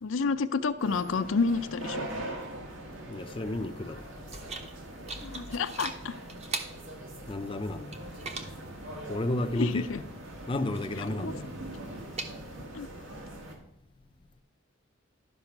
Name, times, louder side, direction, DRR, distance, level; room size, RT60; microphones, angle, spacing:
voice 1, 0.0-2.1 5.2-6.1 9.6-10.0 11.2-11.3 12.7-12.9, left 4 dB, 75° left, 0.5 m, -29 dB
sound 1, 0.8-13.5, right 1 dB, 75° right, 2.0 m, -42 dB
voice 2, 3.1-4.0 7.3-8.0 9.1-9.9 10.5-11.5, left 1 dB, 25° left, 0.5 m, -32 dB
sound 2, 3.2-12.7, right 3 dB, 35° right, 1.0 m, -44 dB
12.0 x 5.4 x 5.9 m
head